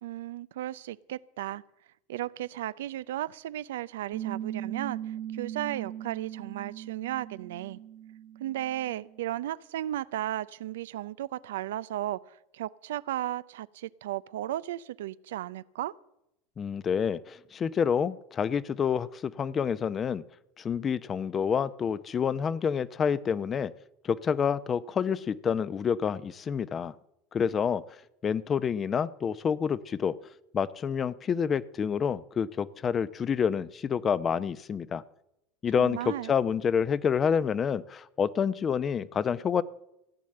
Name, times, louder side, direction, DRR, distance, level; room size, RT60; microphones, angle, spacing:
voice 1, 0.0-1.6 2.1-7.8 8.4-15.9 35.8-36.3, right 13 dB, 90° right, 18 dB, 0.5 m, -35 dB
Piano, 4.1-9.2, right 11 dB, 45° right, 1.4 m, -39 dB
voice 2, 16.6-20.2 20.6-23.7 24.0-26.9 27.3-27.8 28.2-30.2 30.5-35.0 35.6-39.6, left 7 dB, 30° left, 17 dB, 0.7 m, -28 dB
15.5 x 8.6 x 7.7 m, 0.85 s
supercardioid pair, 105°, 0 cm